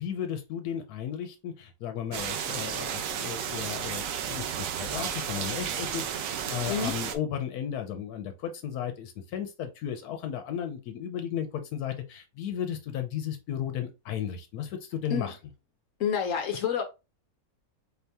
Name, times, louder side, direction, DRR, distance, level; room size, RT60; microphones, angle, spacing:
voice 1, 0.0-15.3, left 9 dB, 85° left, 1.1 m, -34 dB
sound 1, 2.1-7.2, right 8 dB, 65° right, 1.0 m, -33 dB
voice 2, 16.0-16.8, left 7 dB, 65° left, 0.9 m, -28 dB
4.2 x 2.7 x 3.4 m
omnidirectional pair, 1.6 m